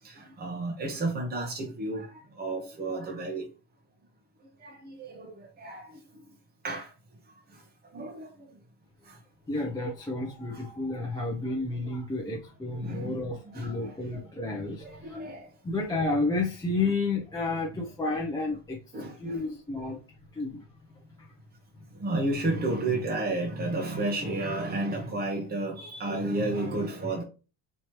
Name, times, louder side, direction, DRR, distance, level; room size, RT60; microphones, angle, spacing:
voice 1, 0.0-3.5 4.6-5.9 6.6-6.9 7.9-8.3 9.1-9.2 10.5-10.6 12.8-13.2 13.5-13.9 14.8-15.5 18.9-19.5 22.0-27.2, right 2 dB, 20° right, 0.9 m, -32 dB
voice 2, 9.5-15.2 15.6-18.8 19.2-20.0 20.3-20.6 21.2-21.3, left 3 dB, 10° left, 0.6 m, -31 dB
4.4 x 3.1 x 3.0 m
cardioid pair, 150°, 46 cm